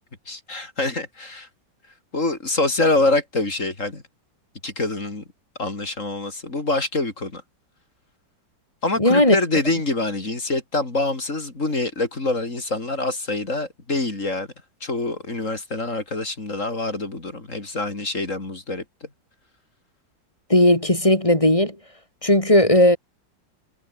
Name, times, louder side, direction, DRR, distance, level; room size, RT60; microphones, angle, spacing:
voice 1, 0.3-1.5 2.1-4.0 4.6-5.2 5.6-7.4 8.8-14.5 14.8-19.1, left 2 dB, 40° left, 4.4 m, -25 dB
voice 2, 9.0-9.3 20.5-21.7 22.2-23.0, left 1 dB, 15° left, 3.3 m, -16 dB
omnidirectional pair, 2.0 m